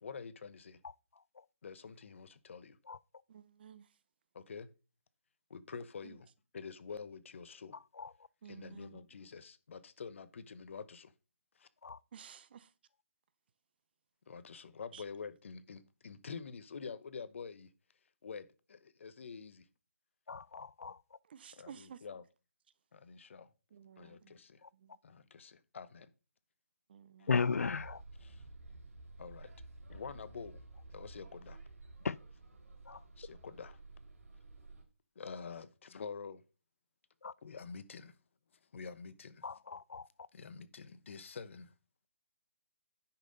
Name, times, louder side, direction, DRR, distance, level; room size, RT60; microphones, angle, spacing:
voice 1, 0.0-0.8 1.6-2.8 4.3-4.7 5.5-7.8 8.5-11.1 11.6-11.7 14.3-17.7 18.2-19.7 21.6-22.2 22.9-23.5 24.0-24.6 25.0-26.1 27.2-27.3 28.2-28.4 29.2-29.5 29.9-30.6 30.9-31.6 33.2-33.8 35.2-36.4 37.4-38.1 38.7-39.4 40.3-41.7, left 5 dB, 55° left, 1.0 m, -47 dB
voice 2, 3.3-3.9 6.0-6.2 8.4-9.0 12.1-12.7 14.9-15.0 21.3-22.0 23.7-24.4 24.7-25.0 26.9-27.3, right 8 dB, 45° right, 0.7 m, -53 dB
voice 3, 20.3-21.0 27.3-28.0 32.0-32.2 32.9-33.0 37.2-37.3 39.4-40.1, left 5 dB, 85° left, 0.4 m, -35 dB
sound 1, 27.6-34.8, right 2 dB, 75° right, 3.3 m, -53 dB
10.0 x 5.8 x 4.0 m
hypercardioid pair, 155°, 8 cm